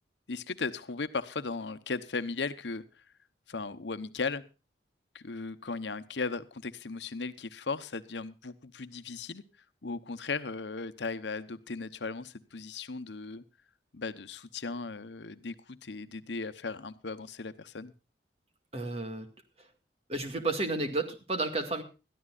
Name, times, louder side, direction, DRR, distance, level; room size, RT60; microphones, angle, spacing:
voice 1, 0.3-2.8 3.5-4.4 5.1-9.4 9.8-13.4 13.9-17.9, left 4 dB, 85° left, 11 dB, 0.9 m, -37 dB
voice 2, 18.7-19.3 20.1-21.8, right 2 dB, 35° right, 6 dB, 2.0 m, -32 dB
21.0 x 13.5 x 2.5 m, 0.31 s
head